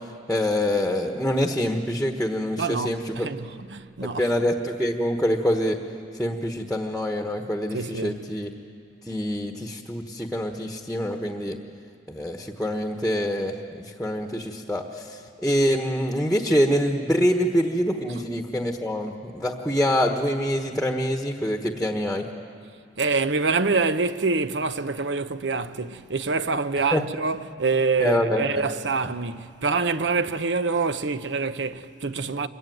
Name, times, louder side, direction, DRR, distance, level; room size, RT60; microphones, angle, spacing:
voice 1, 0.3-3.3 4.2-5.8 6.2-8.5 9.1-11.6 12.1-13.5 14.0-22.2 26.9-27.0 28.0-28.4, equal, 5° left, 1.2 m, -25 dB
voice 2, 2.6-4.3 7.7-8.2 18.1-18.2 23.0-32.5, right 4 dB, 70° right, 0.9 m, -26 dB
27.0 x 23.0 x 9.4 m
head